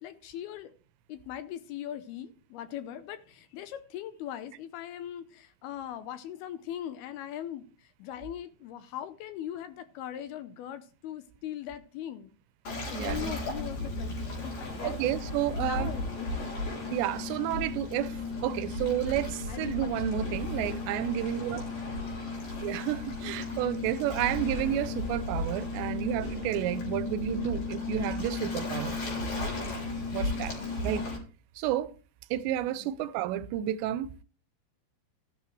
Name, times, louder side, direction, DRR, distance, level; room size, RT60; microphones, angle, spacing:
voice 1, 0.0-0.8 1.1-12.3 12.9-15.0 15.5-16.3 19.5-20.3 20.5-20.8 32.8-32.9, left 11 dB, 75° left, 2.4 m, -40 dB
Waves surf, 12.7-31.2, left 3 dB, 55° left, 5.2 m, -34 dB
voice 2, 12.9-13.3 14.8-15.9 16.9-18.1 18.4-21.6 22.6-29.0 30.1-30.5 30.8-31.0 31.6-31.9 32.3-34.1, right 12 dB, 90° right, 2.9 m, -31 dB
14.0 x 11.5 x 3.1 m
omnidirectional pair, 5.0 m